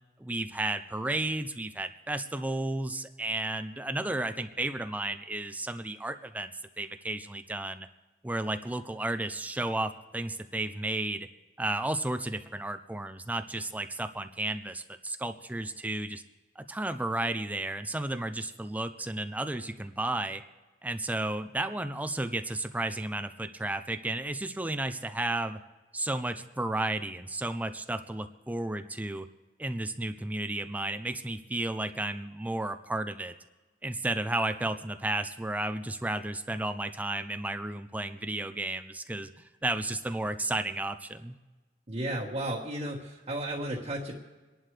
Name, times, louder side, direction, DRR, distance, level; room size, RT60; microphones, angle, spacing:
voice 1, 0.2-6.5 6.8-7.9 8.2-11.3 11.6-16.2 16.6-20.4 20.8-25.6 25.9-29.3 29.6-33.3 33.8-41.4, right 2 dB, 10° right, 9 dB, 0.5 m, -33 dB
voice 2, 41.9-44.1, right 1 dB, 35° right, -4 dB, 1.4 m, -33 dB
27.5 x 11.0 x 3.3 m, 1.2 s
head